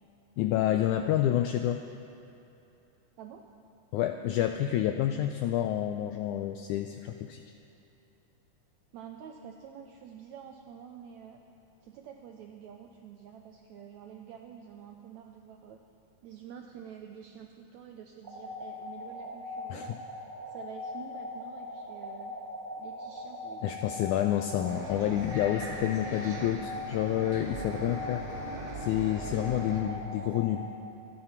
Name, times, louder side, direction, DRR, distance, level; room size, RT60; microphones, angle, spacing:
voice 1, 0.4-1.9 3.9-7.4 19.7-20.0 23.6-28.2 28.7-30.7, left 12 dB, 85° left, 6 dB, 1.7 m, -29 dB
voice 2, 8.9-11.4 11.8-15.8 16.2-19.9 20.5-22.3 22.8-23.8, right 8 dB, 90° right, 4 dB, 1.6 m, -48 dB
sound 1, 18.2-30.5, left 1 dB, 20° right, 1.3 m, -41 dB
Bus, 24.7-29.8, right 2 dB, 55° right, 3.6 m, -40 dB
26.5 x 10.0 x 4.4 m, 2.8 s
omnidirectional pair, 4.0 m